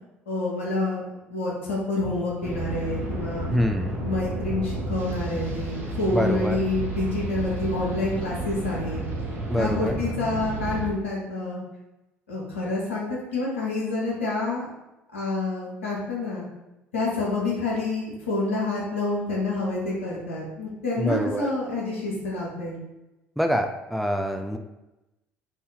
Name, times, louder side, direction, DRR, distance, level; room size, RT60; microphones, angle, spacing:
voice 1, 0.3-3.5 4.0-9.0 9.6-11.6 12.3-14.7 15.1-16.5 16.9-22.8, left 2 dB, 80° left, -4 dB, 0.9 m, -28 dB
sound 1, 2.4-10.9, right 2 dB, 40° right, 1.0 m, -32 dB
voice 2, 3.5-4.0 6.1-6.6 9.5-10.0 21.0-21.5 23.4-24.6, equal, ahead, 4 dB, 0.3 m, -25 dB
2.7 x 2.7 x 3.8 m, 0.99 s
figure-of-eight pair, 60°, 7 cm